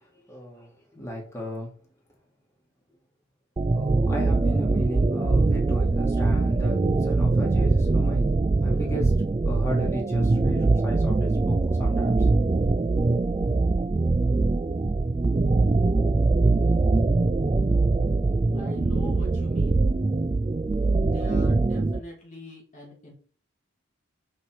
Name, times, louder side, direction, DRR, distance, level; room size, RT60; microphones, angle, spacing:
voice 1, 0.3-1.7 3.7-8.3 8.6-12.5, equal, 15° left, -3 dB, 2.9 m, -34 dB
sound 1, 3.6-22.0, right 3 dB, 25° right, 0.3 m, -22 dB
voice 2, 18.5-19.8 21.0-23.1, left 1 dB, 40° left, -2 dB, 2.7 m, -43 dB
10.5 x 4.5 x 4.7 m, 0.43 s
head